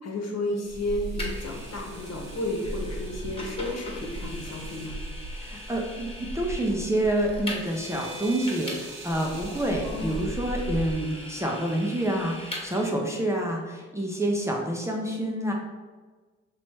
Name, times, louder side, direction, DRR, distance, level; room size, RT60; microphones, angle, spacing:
voice 1, 0.0-4.9 9.8-10.2, left 1 dB, 60° left, 0 dB, 1.1 m, -32 dB
sound 1, 0.6-10.9, right 1 dB, 60° right, 1.2 m, -38 dB
Vehicle, 1.2-12.8, left 1 dB, 20° left, 1.3 m, -41 dB
voice 2, 5.4-15.5, right 1 dB, 10° right, -1 dB, 0.6 m, -28 dB
3.0 x 3.0 x 4.5 m, 1.3 s
cardioid pair, 90°, 30 cm